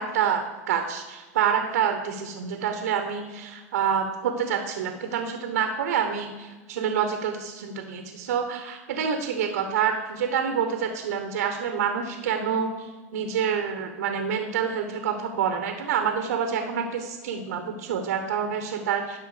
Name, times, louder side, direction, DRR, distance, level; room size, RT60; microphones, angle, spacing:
voice 1, 0.0-19.2, right 7 dB, 80° right, 5 dB, 1.1 m, -27 dB
12.0 x 5.5 x 5.0 m, 1.3 s
hypercardioid pair, 105°, 9 cm